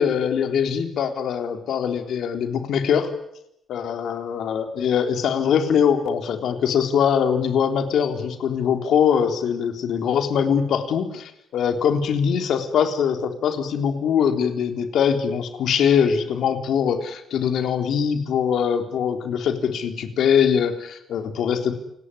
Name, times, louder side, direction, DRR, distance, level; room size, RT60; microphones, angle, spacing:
voice 1, 0.0-3.1 3.7-21.7, left 7 dB, 70° left, 7 dB, 3.7 m, -22 dB
28.5 x 19.5 x 9.9 m, 0.79 s
cardioid pair, 90°, 0 cm